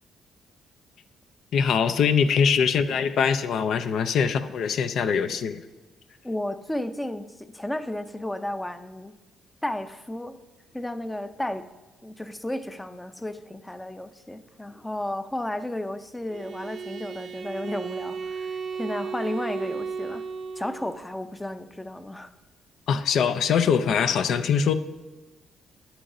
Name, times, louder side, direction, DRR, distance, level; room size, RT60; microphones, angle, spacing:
voice 1, 1.5-5.6 22.9-24.7, left 6 dB, 70° left, 10 dB, 0.4 m, -23 dB
voice 2, 6.2-9.1 9.6-10.4 10.7-11.7 12.0-20.2 20.6-22.3, left 1 dB, 10° left, 11 dB, 0.5 m, -33 dB
Bowed string instrument, 16.3-21.0, right 5 dB, 55° right, 0.6 m, -34 dB
10.5 x 8.7 x 2.6 m, 1.2 s
cardioid pair, 90°, 0 cm